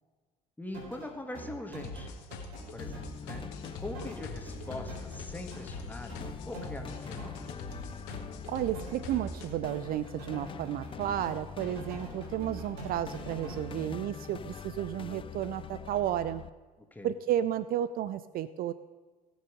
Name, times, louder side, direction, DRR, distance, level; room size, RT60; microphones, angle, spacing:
voice 1, 0.6-2.2 2.7-3.4 3.8-6.1 6.5-7.6 16.9-17.1, left 1 dB, 10° left, 4 dB, 2.0 m, -42 dB
sound 1, 0.7-13.9, right 2 dB, 65° right, 4.0 m, -45 dB
sound 2, 1.8-9.5, left 4 dB, 65° left, 1.6 m, -43 dB
sound 3, 2.8-16.5, left 8 dB, 25° left, 0.5 m, -44 dB
voice 2, 8.5-16.4 17.0-18.7, right 11 dB, 50° right, 15 dB, 0.5 m, -32 dB
17.5 x 6.3 x 5.0 m, 1.3 s
hypercardioid pair, 60°, 19 cm